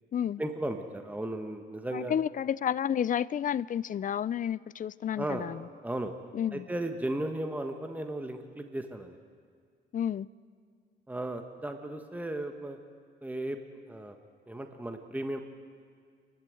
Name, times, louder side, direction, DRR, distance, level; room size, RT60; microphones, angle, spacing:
voice 1, 0.4-2.2 5.2-5.5 5.8-6.1 6.5-9.2 11.1-12.8 13.2-13.6 13.9-14.2 14.5-15.4, right 1 dB, 10° right, 1.4 m, -35 dB
voice 2, 1.9-5.6 6.3-6.7 9.9-10.3, left 9 dB, 45° left, 0.5 m, -31 dB
28.0 x 12.0 x 7.8 m
cardioid pair, 90°, 20 cm